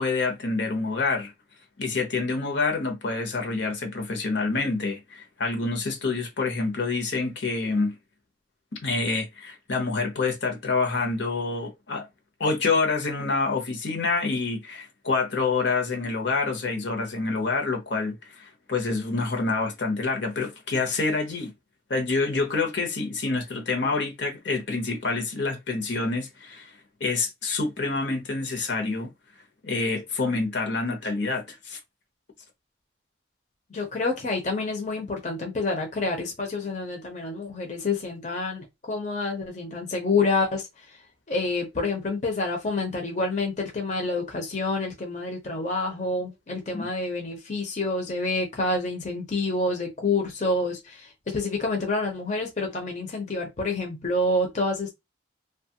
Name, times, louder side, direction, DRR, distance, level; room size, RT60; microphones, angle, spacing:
voice 1, 0.0-1.3 1.8-7.9 8.8-12.1 12.4-21.5 21.9-26.7 27.0-29.1 29.6-31.8 46.7-46.9, left 3 dB, 65° left, 0.8 m, -27 dB
voice 2, 33.7-41.0 41.3-54.9, left 2 dB, 40° left, 0.6 m, -28 dB
2.9 x 2.3 x 2.8 m
head